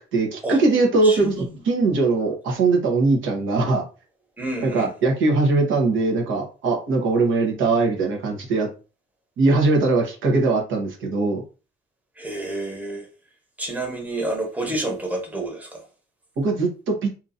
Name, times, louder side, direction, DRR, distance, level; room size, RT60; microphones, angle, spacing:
voice 1, 0.1-1.3 1.6-3.8 4.6-8.7 9.4-11.4 16.4-17.1, right 3 dB, 80° right, 1.0 m, -21 dB
voice 2, 1.0-1.5 4.4-4.9 12.2-13.0 13.6-15.8, right 2 dB, 10° right, 1.0 m, -29 dB
2.8 x 2.5 x 2.5 m
cardioid pair, 90°, 20 cm